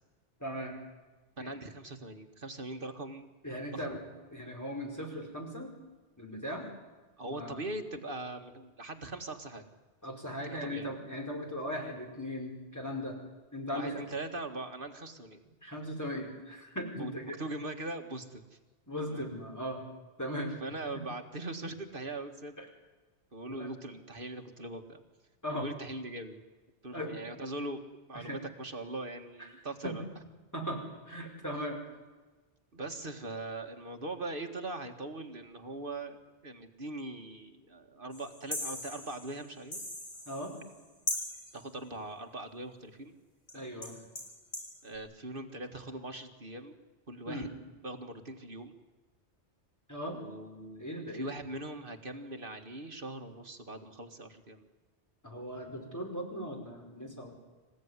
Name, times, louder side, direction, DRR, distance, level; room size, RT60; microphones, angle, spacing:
voice 1, 0.4-0.8 1.4-1.6 3.4-4.0 4.3-5.7 6.2-6.6 7.3-7.6 10.0-13.2 13.5-14.0 15.6-17.4 18.9-19.8 20.2-20.6 22.6-22.7 23.5-23.7 25.4-25.7 26.9-27.3 28.1-28.4 29.4-29.5 29.8-29.9 30.5-31.8 40.3-40.5 43.5-43.9 47.3-47.5 49.9-50.2 50.8-51.3 55.2-57.3, equal, 15° left, 0 dB, 5.1 m, -38 dB
voice 2, 1.4-3.3 3.7-3.8 7.2-9.7 10.4-10.9 13.7-15.4 17.0-18.6 19.1-19.2 20.6-22.6 23.3-25.0 25.5-26.4 26.8-30.1 32.7-39.8 41.5-43.1 43.5-43.7 44.8-46.8 47.1-47.5 47.8-48.7 50.1-50.9 51.1-54.7, right 2 dB, 50° right, 5 dB, 2.0 m, -41 dB
sound 1, 38.1-40.8 41.1-41.6 43.5-43.6 43.8-44.7, left 1 dB, 60° left, 5.5 m, -39 dB
27.0 x 15.5 x 9.7 m, 1.2 s
omnidirectional pair, 1.2 m